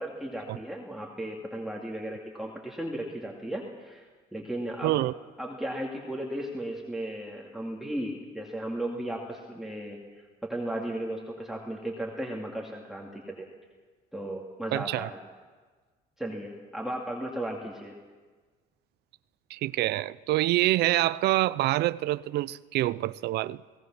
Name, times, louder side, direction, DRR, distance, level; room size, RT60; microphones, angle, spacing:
voice 1, 0.0-4.1 4.3-5.0 5.4-10.0 10.4-13.5 14.1-15.2 16.2-18.0, right 1 dB, ahead, 2.4 m, -35 dB
voice 2, 4.8-5.1 14.7-15.1 19.5-23.6, right 16 dB, 80° right, 0.6 m, -26 dB
30.0 x 18.0 x 6.1 m
cardioid pair, 110°, 17 cm